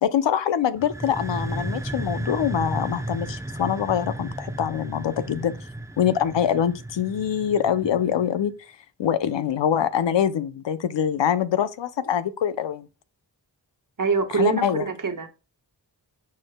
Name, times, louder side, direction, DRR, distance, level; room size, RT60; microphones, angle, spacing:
voice 1, 0.0-5.5 6.0-12.9 14.3-14.9, left 9 dB, 90° left, 0.6 m, -24 dB
sound 1, 0.8-8.4, right 1 dB, 5° right, 0.6 m, -34 dB
voice 2, 14.0-15.3, right 4 dB, 50° right, 1.4 m, -24 dB
9.4 x 4.6 x 2.2 m
cardioid pair, 55°, 42 cm